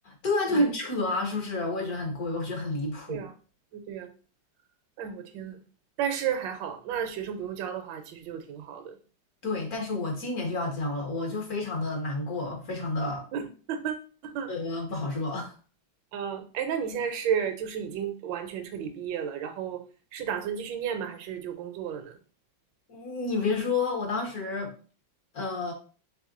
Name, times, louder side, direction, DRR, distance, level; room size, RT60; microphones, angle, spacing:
voice 1, 0.0-3.2 9.4-13.2 14.5-15.5 22.9-24.7 25.3-25.7, left 2 dB, 55° left, 1.4 m, -30 dB
voice 2, 3.7-4.1 5.0-5.6 6.0-9.0 13.3-14.5 16.1-19.8 20.1-22.2, right 8 dB, 75° right, 1.3 m, -33 dB
3.5 x 3.4 x 3.7 m
omnidirectional pair, 2.2 m